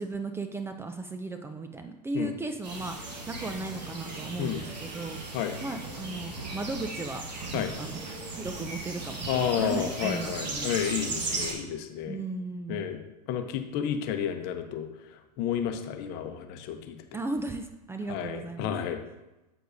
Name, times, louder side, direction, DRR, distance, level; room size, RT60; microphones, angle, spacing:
voice 1, 0.0-5.2 5.6-7.2 7.8-8.0 8.4-10.7 12.1-12.8 17.1-18.9, right 3 dB, 10° right, 6 dB, 0.5 m, -36 dB
sound 1, 2.6-11.5, right 3 dB, 90° right, 1.6 m, -36 dB
voice 2, 9.3-12.2 12.7-13.0 13.3-17.0 18.1-19.0, left 9 dB, 50° left, 7 dB, 0.9 m, -31 dB
7.8 x 6.6 x 2.7 m, 1.0 s
hypercardioid pair, 95°, 21 cm